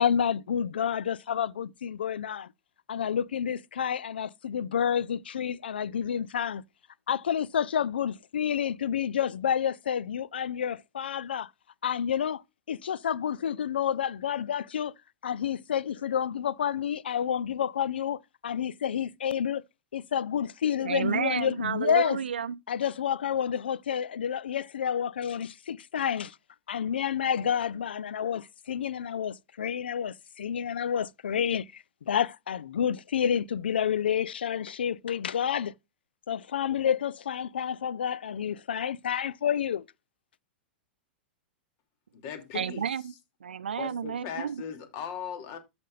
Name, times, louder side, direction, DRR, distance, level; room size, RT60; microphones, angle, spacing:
voice 1, 0.0-2.5 2.9-6.6 7.1-11.5 11.8-12.4 12.7-14.9 15.2-19.6 19.9-22.2 22.7-26.4 26.7-35.7 36.3-39.8, left 8 dB, 70° left, 0.5 m, -29 dB
voice 2, 20.8-22.6 42.5-43.1 43.4-44.6, right 7 dB, 70° right, 0.6 m, -31 dB
voice 3, 42.1-42.8 43.8-45.6, left 8 dB, 45° left, 2.7 m, -38 dB
13.5 x 5.3 x 2.4 m
figure-of-eight pair, 100°, 6 cm